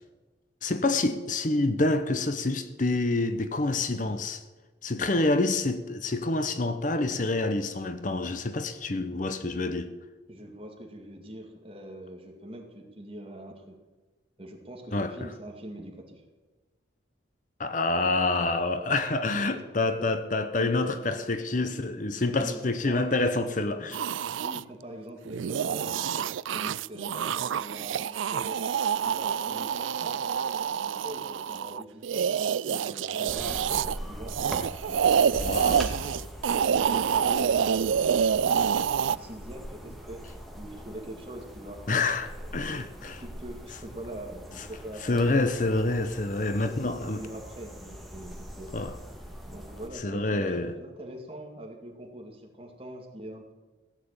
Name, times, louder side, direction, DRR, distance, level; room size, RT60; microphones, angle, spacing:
voice 1, 0.6-4.4 4.8-9.9 14.9-15.3 17.6-24.0 35.4-35.8 41.9-43.2 45.0-47.2 48.7-48.9 49.9-50.7, left 2 dB, 40° left, 0.8 m, -27 dB
voice 2, 10.3-13.7 14.4-16.2 19.5-19.7 20.0-20.1 20.6-21.3 21.6-21.7 22.4-23.9 24.4-28.6 29.0-32.3 32.7-34.6 34.9-36.2 36.7-40.2 40.6-41.8 42.3-45.5 46.3-48.7 49.5-53.5, right 1 dB, 30° right, 2.3 m, -43 dB
sound 1, 23.9-24.6 25.3-34.0 34.3-39.2, right 7 dB, 85° right, 0.4 m, -27 dB
sound 2, 33.3-49.9, equal, ahead, 1.6 m, -42 dB
16.0 x 7.5 x 8.9 m
head